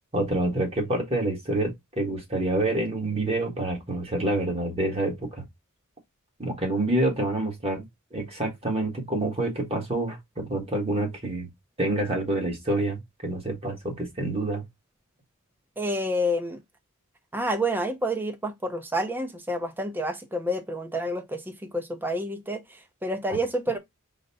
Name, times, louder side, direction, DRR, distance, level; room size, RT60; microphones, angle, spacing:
voice 1, 0.1-5.4 6.4-7.9 8.1-11.5 11.8-14.6, right 2 dB, 25° right, 1.3 m, -27 dB
voice 2, 15.8-16.6 17.3-23.8, equal, 10° right, 0.6 m, -29 dB
4.0 x 2.1 x 3.9 m
head